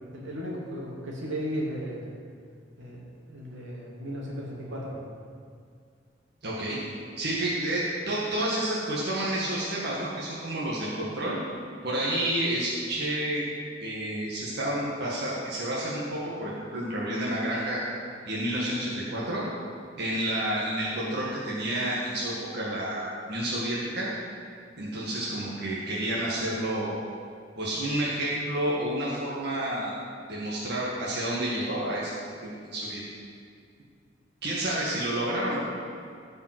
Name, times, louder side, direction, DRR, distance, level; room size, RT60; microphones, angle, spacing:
voice 1, 0.1-2.1 2.8-5.0, equal, 85° right, -3 dB, 2.5 m, -35 dB
voice 2, 6.4-6.8 7.2-11.4 11.8-13.4 13.8-17.8 18.3-19.4 20.0-24.1 24.8-27.0 27.6-29.9 30.3-32.2 32.4-33.0 34.4-35.6, right 1 dB, 60° right, -6 dB, 1.8 m, -30 dB
15.5 x 5.4 x 6.1 m, 2.2 s
head